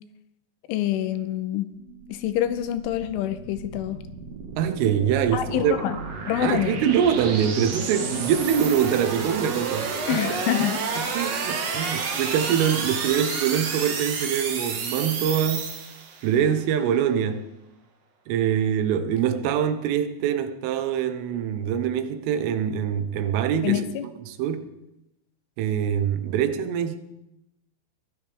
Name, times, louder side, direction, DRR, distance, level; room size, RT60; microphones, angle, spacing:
voice 1, 0.7-1.7 2.1-4.0 5.3-6.0 6.3-6.8 10.1-11.3 23.6-24.1, left 12 dB, 90° left, 3.3 m, -26 dB
sound 1, 1.8-16.3, right 5 dB, 60° right, 1.8 m, -31 dB
voice 2, 4.6-5.8 6.4-10.2 11.0-15.7 16.2-17.5 18.3-24.7 25.6-27.0, right 8 dB, 90° right, 3.6 m, -24 dB
22.5 x 16.0 x 3.5 m
omnidirectional pair, 5.6 m